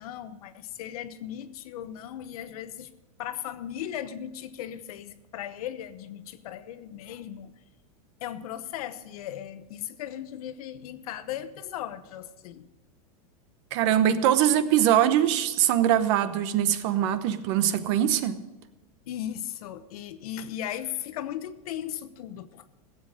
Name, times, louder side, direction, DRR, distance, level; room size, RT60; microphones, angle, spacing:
voice 1, 0.0-2.9 3.2-7.5 8.2-12.7 19.1-22.7, left 11 dB, 70° left, 1.0 m, -37 dB
voice 2, 13.7-18.4, right 11 dB, 50° right, 0.9 m, -22 dB
16.5 x 7.9 x 6.4 m
supercardioid pair, 150°, 20 cm